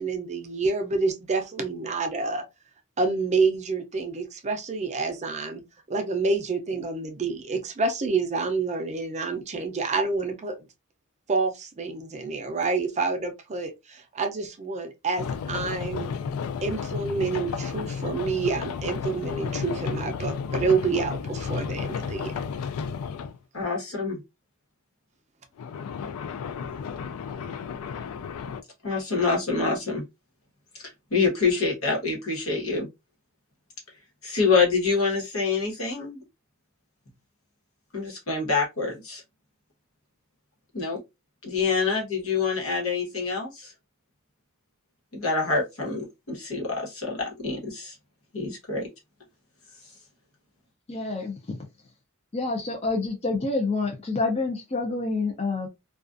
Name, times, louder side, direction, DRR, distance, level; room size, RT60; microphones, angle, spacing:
voice 1, 0.0-2.4 3.0-5.6 5.9-10.6 11.3-16.1 16.6-22.3, right 4 dB, 35° right, 0.5 m, -28 dB
sound 1, 15.2-23.4 25.6-28.6, left 6 dB, 85° left, 0.3 m, -32 dB
voice 2, 23.5-24.2 28.8-30.0 31.1-32.9 34.2-36.2 37.9-39.2 40.7-41.0 41.4-43.7 45.1-47.9 48.3-48.9, left 4 dB, 70° left, 1.2 m, -26 dB
voice 3, 50.9-51.4 52.3-55.7, left 3 dB, 30° left, 0.5 m, -27 dB
2.4 x 2.3 x 2.4 m
head